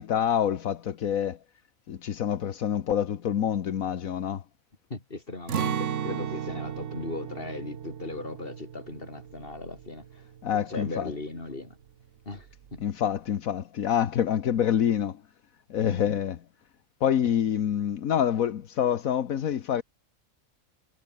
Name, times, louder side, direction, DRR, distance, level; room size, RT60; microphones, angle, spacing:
voice 1, 0.0-1.4 1.9-4.4 10.4-11.1 12.8-15.2 15.7-16.4 17.0-19.8, left 9 dB, 80° left, 1.5 m, -26 dB
voice 2, 4.9-10.2 10.7-11.8 12.3-12.5 12.7-12.8 15.8-16.2, left 2 dB, 40° left, 3.7 m, -38 dB
Acoustic guitar, 5.5-11.4 11.7-11.9 12.3-12.8, right 9 dB, 65° right, 1.2 m, -35 dB
omnidirectional pair, 1.4 m